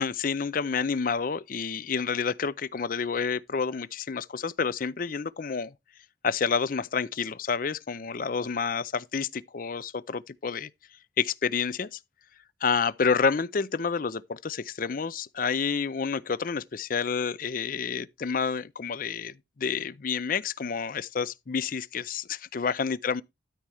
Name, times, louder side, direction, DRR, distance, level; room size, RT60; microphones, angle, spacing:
voice 1, 0.0-5.7 6.2-10.7 11.2-12.0 12.6-23.2, left 5 dB, 45° left, 0.5 m, -29 dB
13.0 x 4.3 x 4.8 m
head